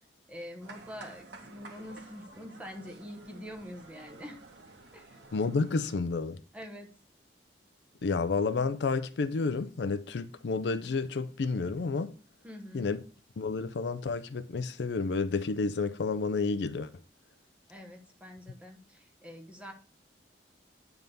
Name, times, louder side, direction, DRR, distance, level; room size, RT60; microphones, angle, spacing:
voice 1, 0.3-4.4 4.9-5.2 6.5-6.9 12.4-13.0 17.7-19.7, equal, 5° right, 1.1 m, -45 dB
sound 1, 0.6-6.0, right 3 dB, 70° right, 1.5 m, -51 dB
voice 2, 5.3-6.4 8.0-12.1 12.7-13.0 13.4-16.9, left 4 dB, 65° left, 0.4 m, -30 dB
9.0 x 3.6 x 5.4 m
head